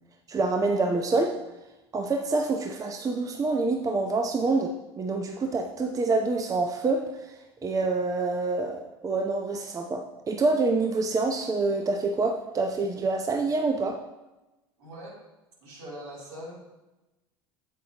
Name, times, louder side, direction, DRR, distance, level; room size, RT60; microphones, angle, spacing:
voice 1, 0.3-1.4 1.9-14.0, right 3 dB, 25° right, 3 dB, 0.7 m, -27 dB
voice 2, 14.8-15.2 15.6-16.5, equal, 70° right, -5 dB, 3.0 m, -41 dB
8.4 x 7.8 x 2.9 m, 1.0 s
hypercardioid pair, 75°, 13 cm